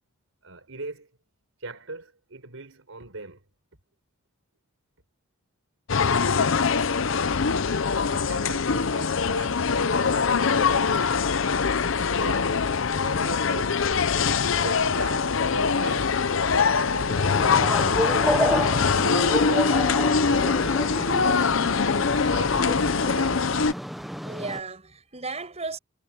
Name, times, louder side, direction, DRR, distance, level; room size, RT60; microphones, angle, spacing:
voice 1, 0.4-1.1 1.6-3.4 7.9-11.3 12.1-12.5 12.9-13.9 14.5-17.7 17.9-18.6 19.0-21.8 22.1-23.4, right 3 dB, 90° right, 4.2 m, -39 dB
sound 1, 5.9-23.7, left 5 dB, 70° left, 0.7 m, -23 dB
sound 2, 17.1-24.6, equal, ahead, 0.6 m, -30 dB
voice 2, 24.0-25.8, right 3 dB, 30° right, 7.1 m, -35 dB
head